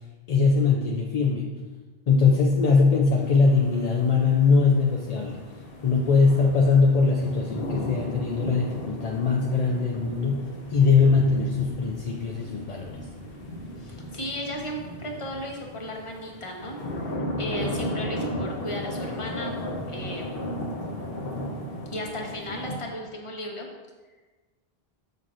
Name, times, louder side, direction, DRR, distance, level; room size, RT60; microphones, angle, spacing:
voice 1, 0.3-1.5 2.1-5.4 5.8-10.4 10.7-13.0, left 4 dB, 50° left, -1 dB, 0.5 m, -21 dB
sound 1, 3.2-22.7, equal, 65° left, 1.1 m, -35 dB
voice 2, 13.8-16.7 17.4-19.6 19.9-20.4 21.9-23.7, left 1 dB, 30° left, 0 dB, 0.9 m, -35 dB
6.6 x 5.7 x 2.5 m, 1.3 s
omnidirectional pair, 1.0 m